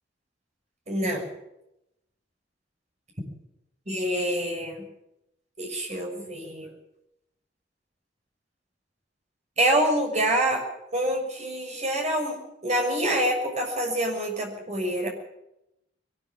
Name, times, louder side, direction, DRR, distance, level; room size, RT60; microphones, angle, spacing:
voice 1, 0.9-1.3 3.9-4.8 5.6-6.7 9.6-10.6 10.9-12.4 12.6-15.1, right 1 dB, 40° right, 2 dB, 6.4 m, -26 dB
22.0 x 13.5 x 9.7 m, 0.85 s
head